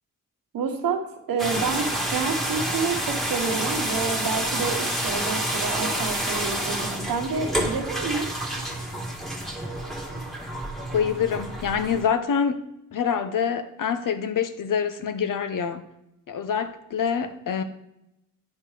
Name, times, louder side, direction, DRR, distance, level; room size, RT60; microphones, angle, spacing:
voice 1, 0.5-1.0 1.3-8.4, right 5 dB, 90° right, 1.2 m, -28 dB
sound 1, 1.4-12.1, right 1 dB, ahead, 1.6 m, -29 dB
voice 2, 10.9-12.6 12.9-15.8 16.3-17.6, left 7 dB, 70° left, 0.9 m, -26 dB
9.5 x 4.2 x 5.0 m
cardioid pair, 65°, 33 cm